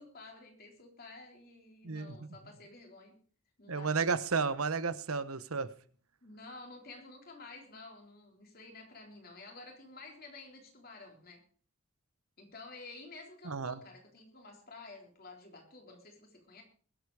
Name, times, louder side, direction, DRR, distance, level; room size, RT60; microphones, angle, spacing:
voice 1, 0.0-3.2 3.6-4.0 6.2-11.4 12.4-16.6, left 3 dB, 45° left, 2 dB, 3.8 m, -51 dB
voice 2, 1.8-2.3 3.7-5.7 13.4-13.8, right 5 dB, 85° right, 14 dB, 1.0 m, -32 dB
21.0 x 8.3 x 4.8 m, 0.42 s
head